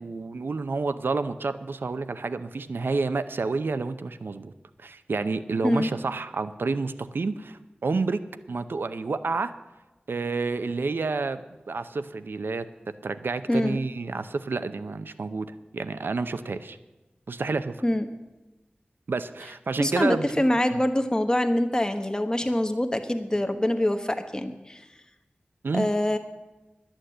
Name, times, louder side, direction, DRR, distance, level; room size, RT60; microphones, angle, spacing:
voice 1, 0.0-4.5 4.8-8.2 8.5-9.5 10.1-12.6 13.0-16.8 17.3-17.8 19.1-20.3 20.7-20.8 25.6-25.9, right 3 dB, 85° right, 12 dB, 0.6 m, -29 dB
voice 2, 19.8-24.8 25.7-26.2, left 1 dB, 20° left, 7 dB, 1.1 m, -25 dB
11.5 x 8.9 x 7.8 m, 1.1 s
wide cardioid pair, 65°, 4 cm